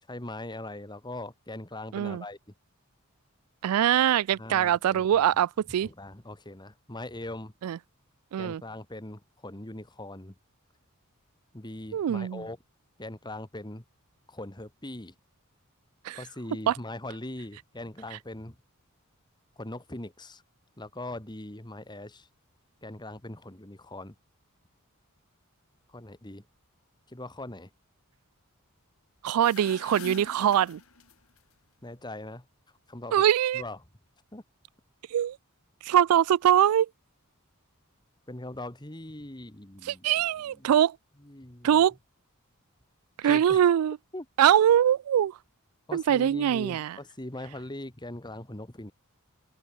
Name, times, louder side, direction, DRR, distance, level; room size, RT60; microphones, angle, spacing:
voice 1, 0.1-2.4 4.4-5.3 5.8-7.5 8.4-10.3 11.5-12.6 13.0-13.8 14.3-15.1 16.1-18.6 19.6-20.4 20.8-22.3 22.8-24.2 25.9-26.4 27.1-27.7 31.8-32.4 32.9-33.2 33.5-33.8 34.3-34.4 38.3-40.1 40.5-40.8 41.2-41.8 43.2-43.6 44.1-44.3 45.9-48.9, left 1 dB, 20° left, 1.9 m, -41 dB
voice 2, 1.9-2.2 3.6-5.9 7.6-7.8 8.3-8.6 11.9-12.4 16.0-16.2 16.7-16.8 29.2-30.8 33.1-33.6 35.1-35.4 35.8-36.9 39.8-41.0 41.6-41.9 43.2-44.0 44.4-45.4 45.9-47.0, right 10 dB, 80° right, 0.3 m, -23 dB
sound 1, 29.3-31.4, left 4 dB, 70° left, 3.2 m, -44 dB
head